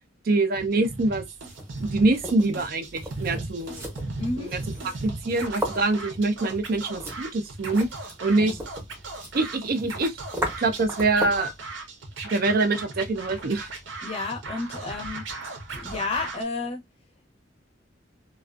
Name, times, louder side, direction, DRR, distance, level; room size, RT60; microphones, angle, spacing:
voice 1, 0.3-1.2 1.8-3.9 4.4-4.6 5.0-7.9 8.2-8.6 9.3-10.1 10.6-11.5 12.3-13.7, right 2 dB, 50° right, 0.4 m, -24 dB
Scratching (performance technique), 0.5-16.4, right 2 dB, 80° right, 0.8 m, -37 dB
sound 1, 1.3-11.5, equal, 15° right, 0.7 m, -37 dB
voice 2, 4.2-4.5 5.3-5.4 8.4-8.6 14.0-15.2 15.7-16.8, left 3 dB, 35° left, 0.6 m, -31 dB
2.5 x 2.3 x 2.3 m
head